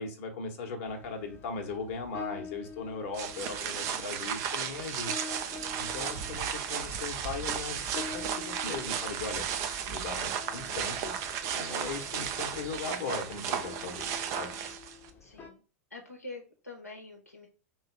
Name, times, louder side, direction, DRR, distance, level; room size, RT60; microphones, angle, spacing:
voice 1, 0.0-5.2 5.8-9.5 9.9-11.2 11.5-14.1 14.4-14.5, left 4 dB, 50° left, 4 dB, 1.1 m, -38 dB
sound 1, 0.8-15.5, left 4 dB, 30° left, 0.9 m, -47 dB
sound 2, 3.1-15.1, right 8 dB, 40° right, 0.6 m, -34 dB
voice 2, 15.2-15.6 15.9-17.5, left 2 dB, 85° left, 0 dB, 0.9 m, -46 dB
3.2 x 2.8 x 4.5 m, 0.36 s
figure-of-eight pair, 85°, 8 cm